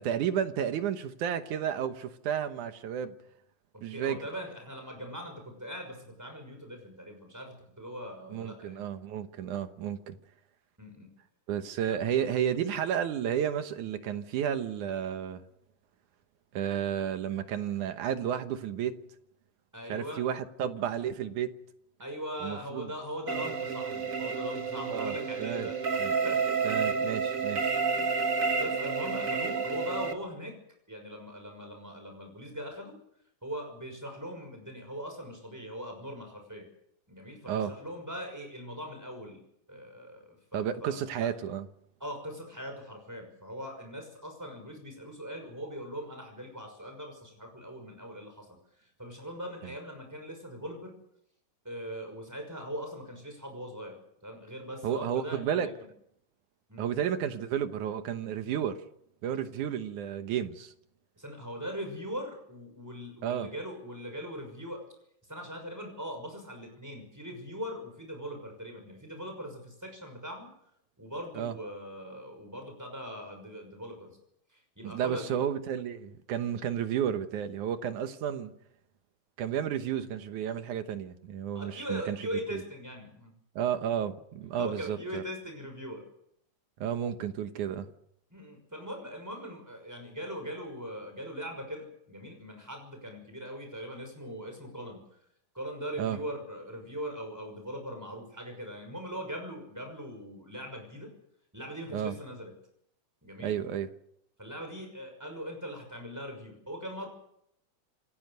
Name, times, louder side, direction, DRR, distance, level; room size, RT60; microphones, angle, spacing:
voice 1, 0.0-3.1 3.8-4.2 8.3-10.2 11.5-15.4 16.5-19.0 19.9-21.6 22.4-22.9 24.9-25.1 25.4-25.7 26.0-26.1 26.6-27.7 37.5-37.7 40.5-41.7 54.8-55.7 56.8-58.8 59.2-60.7 63.2-63.5 71.4-71.6 74.8-78.5 79.4-82.2 82.5-82.6 83.6-85.2 86.8-87.9 96.0-96.2 101.9-102.1 103.4-103.9, right 9 dB, 75° right, 2.6 m, -32 dB
voice 2, 3.7-8.8 10.8-11.1 11.9-12.0 19.7-20.2 22.0-26.6 27.9-30.6 30.9-33.0 33.4-36.7 37.1-39.4 39.7-41.3 42.0-48.5 49.0-50.9 51.6-54.0 54.2-55.9 56.7-56.9 61.2-64.8 65.3-70.5 71.0-74.2 74.8-75.4 76.6-76.7 81.5-83.3 84.5-86.1 88.3-95.0 95.5-101.1 101.5-102.5 103.2-103.5 104.4-107.1, equal, 5° right, 5.8 m, -41 dB
sound 1, 23.3-30.1, right 5 dB, 45° right, 1.1 m, -30 dB
28.0 x 15.5 x 6.7 m
omnidirectional pair, 3.6 m